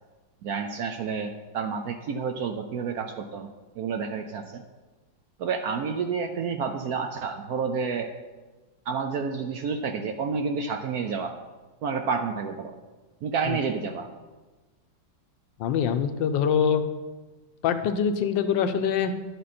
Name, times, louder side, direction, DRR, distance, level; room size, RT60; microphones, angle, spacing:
voice 1, 0.4-3.5 3.8-4.6 5.4-8.1 8.9-11.3 11.8-12.7 13.2-14.1, right 5 dB, 70° right, 6 dB, 0.9 m, -29 dB
voice 2, 15.6-16.8 17.6-19.1, left 7 dB, 80° left, 9 dB, 1.4 m, -24 dB
11.5 x 7.6 x 4.2 m, 1.2 s
omnidirectional pair, 2.0 m